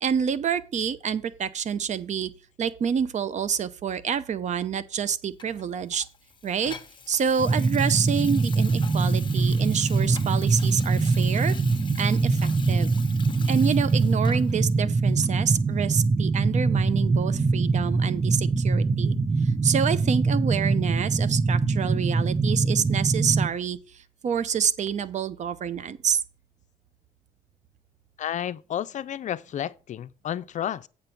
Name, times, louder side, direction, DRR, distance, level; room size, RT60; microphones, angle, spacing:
voice 1, 0.0-2.3 2.6-6.0 6.4-6.8 7.1-11.6 12.0-12.9 13.5-19.2 19.4-26.2, right 7 dB, 55° right, 0.8 m, -27 dB
Water tap faucet / Sink (filling or washing), 5.4-14.7 15.2-15.3, left 5 dB, 35° left, 1.1 m, -44 dB
sound 1, 7.4-23.5, right 3 dB, 20° right, 0.7 m, -23 dB
voice 2, 28.2-30.9, left 10 dB, 60° left, 0.5 m, -31 dB
8.2 x 5.3 x 5.8 m
cardioid pair, 95°, 14 cm